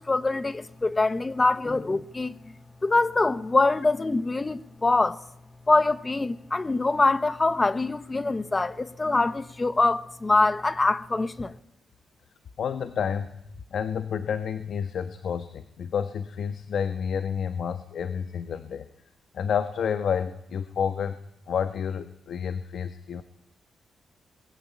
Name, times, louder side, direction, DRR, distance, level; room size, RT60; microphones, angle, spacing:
voice 1, 0.0-2.3 2.8-5.2 5.7-11.5, left 3 dB, 20° left, 1.1 m, -24 dB
voice 2, 12.6-13.3 13.7-18.9 19.3-21.2 21.5-23.2, left 7 dB, 65° left, 1.4 m, -29 dB
25.5 x 21.5 x 8.6 m
wide cardioid pair, 140°, 0 cm